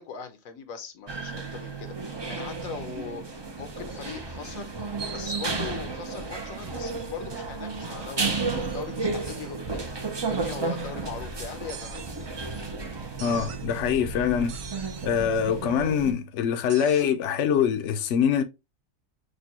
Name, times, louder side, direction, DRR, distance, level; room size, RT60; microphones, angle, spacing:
voice 1, 0.0-4.7 5.1-12.0, left 6 dB, 80° left, 1.2 m, -40 dB
sound 1, 1.1-16.1, right 4 dB, 40° right, 0.4 m, -33 dB
sound 2, 11.7-12.3 13.2-13.7 14.5-15.1 16.7-17.0, right 8 dB, 65° right, 0.7 m, -43 dB
voice 2, 13.2-14.6 15.0-18.4, left 8 dB, 65° left, 0.9 m, -24 dB
6.5 x 2.2 x 2.8 m
omnidirectional pair, 1.4 m